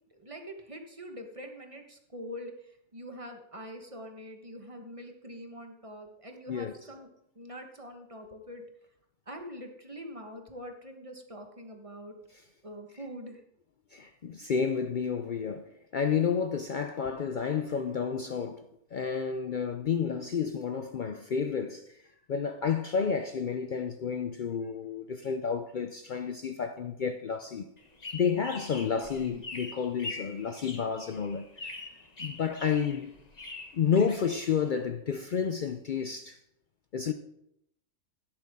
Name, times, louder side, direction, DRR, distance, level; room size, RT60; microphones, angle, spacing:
voice 1, 0.1-7.1 7.3-8.6 9.3-12.2 12.6-13.4, equal, 25° right, 1.2 m, -44 dB
voice 2, 13.9-18.6 18.9-22.0 22.3-27.7 28.1-31.8 32.2-33.2 33.7-36.4 36.9-37.1, left 6 dB, 85° left, 0.4 m, -30 dB
sound 1, 27.8-34.8, left 3 dB, 30° left, 1.3 m, -44 dB
12.5 x 10.5 x 3.6 m
omnidirectional pair, 1.6 m